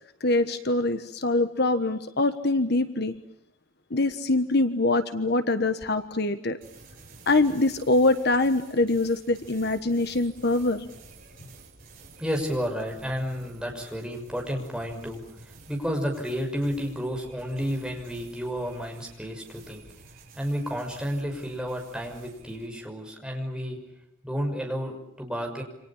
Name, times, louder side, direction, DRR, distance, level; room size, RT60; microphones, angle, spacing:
voice 1, 0.2-3.1 3.9-6.6 7.3-10.9, left 2 dB, 55° left, 9 dB, 1.4 m, -24 dB
sound 1, 6.6-22.7, right 3 dB, 45° right, 7.4 m, -51 dB
voice 2, 12.2-19.8 20.3-23.8 24.2-25.6, equal, 5° right, 1 dB, 6.1 m, -31 dB
28.5 x 26.5 x 7.3 m, 0.82 s
head